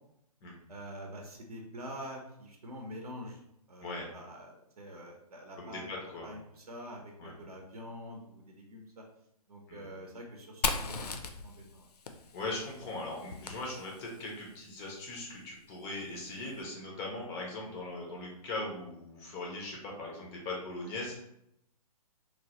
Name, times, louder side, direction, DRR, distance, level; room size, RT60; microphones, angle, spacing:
voice 1, 0.7-3.4 3.7-5.9 6.2-9.0 9.5-11.9, equal, 70° right, 1 dB, 0.6 m, -46 dB
voice 2, 5.6-6.3 7.2-7.3 9.7-9.9 12.3-21.3, left 2 dB, 10° left, -2 dB, 0.3 m, -40 dB
Fire, 10.6-14.3, left 4 dB, 80° left, 0.4 m, -37 dB
3.0 x 2.1 x 2.8 m, 0.78 s
figure-of-eight pair, 135°, 20 cm